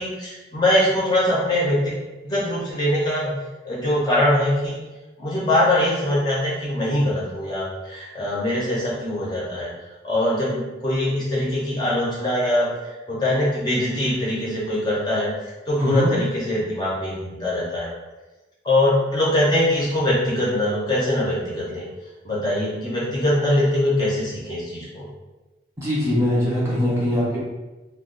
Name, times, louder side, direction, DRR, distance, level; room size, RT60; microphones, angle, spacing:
voice 1, 0.0-3.3 3.6-4.8 5.2-9.7 10.0-12.7 13.1-15.3 15.7-17.9 18.6-21.8 22.2-25.1, left 1 dB, 25° left, -7 dB, 0.7 m, -22 dB
voice 2, 15.8-16.2 25.8-27.4, left 1 dB, 15° right, -7 dB, 0.7 m, -22 dB
2.4 x 2.2 x 3.7 m, 1.1 s
head